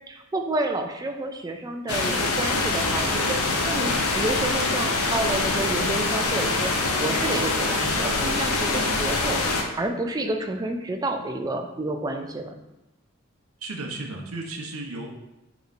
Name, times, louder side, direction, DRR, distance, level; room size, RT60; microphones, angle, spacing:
voice 1, 0.1-9.4 9.8-12.5, right 2 dB, 15° right, 5 dB, 0.3 m, -30 dB
sound 1, 1.9-9.6, left 3 dB, 90° left, 0.6 m, -24 dB
voice 2, 13.6-15.1, right 2 dB, 85° right, 1 dB, 0.6 m, -34 dB
5.1 x 3.0 x 2.5 m, 0.94 s
head